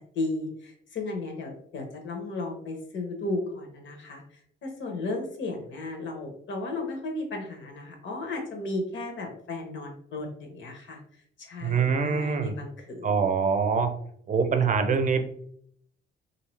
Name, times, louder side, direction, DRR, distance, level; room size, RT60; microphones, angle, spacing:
voice 1, 0.1-11.0 11.4-13.1, left 2 dB, 70° left, 2 dB, 1.1 m, -34 dB
voice 2, 11.6-12.5 13.0-13.9 14.3-15.2, right 5 dB, 40° right, 7 dB, 0.6 m, -24 dB
3.2 x 2.8 x 3.2 m, 0.64 s
cardioid pair, 90°, 20 cm